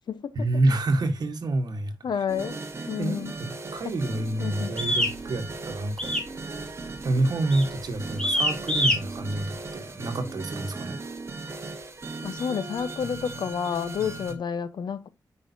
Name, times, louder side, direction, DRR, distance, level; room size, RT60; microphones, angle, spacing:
voice 1, 0.3-2.0 3.0-6.1 7.0-11.0, right 2 dB, 65° right, 1.4 m, -28 dB
voice 2, 2.0-2.6 2.9-3.3 4.4-4.8 12.2-15.1, left 7 dB, 85° left, 0.8 m, -30 dB
sound 1, 2.3-14.3, right 3 dB, 35° right, 1.2 m, -37 dB
sound 2, 4.8-5.2 6.0-6.3 6.6-7.0 7.5-7.7 8.2-9.0, equal, 10° left, 1.9 m, -24 dB
8.7 x 5.5 x 2.7 m
wide cardioid pair, 135°, 7 cm